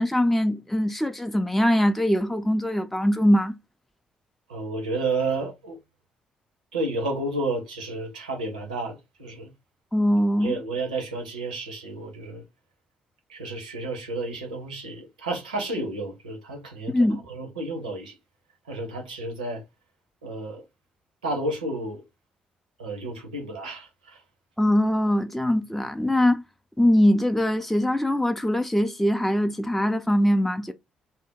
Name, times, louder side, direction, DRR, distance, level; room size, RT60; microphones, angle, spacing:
voice 1, 0.0-3.6 9.9-10.6 16.9-17.2 24.6-26.4 26.8-30.7, left 1 dB, 5° left, 0.4 m, -22 dB
voice 2, 4.5-5.8 6.7-9.5 10.4-12.4 13.3-16.9 17.3-18.1 18.7-19.6 20.2-20.6 21.2-22.0 22.8-24.2, right 2 dB, 85° right, 0.7 m, -31 dB
2.7 x 2.1 x 3.6 m
figure-of-eight pair, 45°, 4 cm